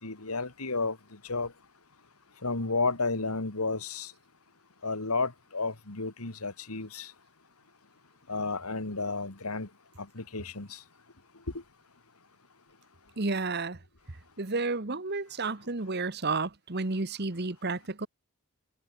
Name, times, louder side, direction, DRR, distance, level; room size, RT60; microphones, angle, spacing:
voice 1, 0.0-1.5 2.4-4.1 4.8-7.1 8.3-9.7 10.0-10.8 11.5-11.6, left 3 dB, 85° left, 2.5 m, -32 dB
voice 2, 13.2-13.8 14.4-18.1, right 3 dB, 45° right, 1.4 m, -31 dB
head